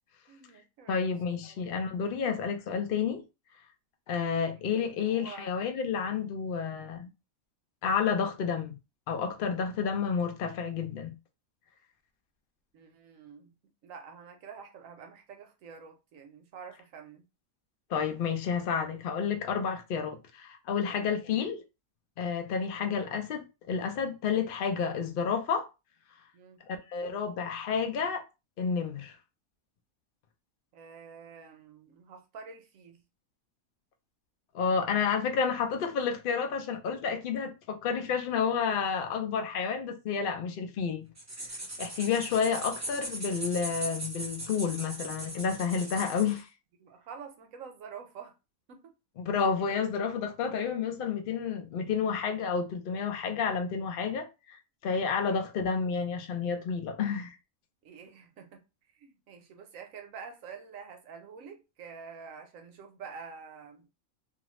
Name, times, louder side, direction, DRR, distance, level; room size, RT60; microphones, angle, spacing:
voice 1, 0.3-1.1 1.4-1.7 4.4-4.7 5.0-5.5 12.7-13.5 13.8-17.2 20.9-21.2 22.8-23.0 26.3-26.6 30.7-33.0 42.4-42.7 46.8-48.3 48.7-48.9 55.2-55.5 57.8-58.6 58.9-63.9, right 6 dB, 70° right, 1.0 m, -48 dB
voice 2, 0.9-3.2 4.1-7.1 7.8-8.8 9.1-11.2 17.9-21.6 22.2-25.7 26.7-28.2 28.6-29.2 34.5-41.1 41.8-46.5 49.2-57.4, left 6 dB, 85° left, 0.4 m, -30 dB
sound 1, 41.2-46.4, right 1 dB, 25° right, 0.3 m, -39 dB
2.6 x 2.5 x 3.0 m
omnidirectional pair, 1.5 m